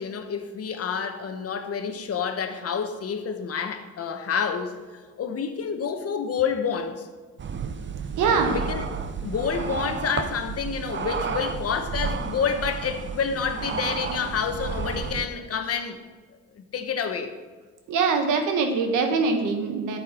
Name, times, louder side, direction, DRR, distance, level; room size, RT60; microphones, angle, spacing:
voice 1, 0.0-7.1 8.5-8.8 9.2-16.0 16.5-17.3, left 6 dB, 50° left, 7 dB, 1.1 m, -28 dB
sound 1, 7.4-15.3, right 5 dB, 40° right, 0.8 m, -31 dB
voice 2, 8.2-8.5 17.9-20.0, right 4 dB, 85° right, 5 dB, 1.3 m, -23 dB
9.2 x 7.4 x 4.4 m, 1.4 s
cardioid pair, 90°, 30 cm